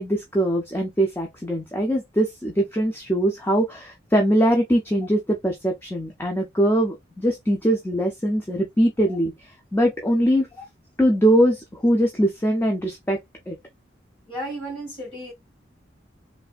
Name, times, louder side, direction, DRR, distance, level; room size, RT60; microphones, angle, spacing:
voice 1, 0.0-9.3 9.7-10.5 11.0-13.2 13.5-13.6, equal, 10° left, 0.5 m, -22 dB
voice 2, 14.3-15.3, right 1 dB, 30° left, 2.0 m, -33 dB
3.2 x 2.5 x 2.3 m
head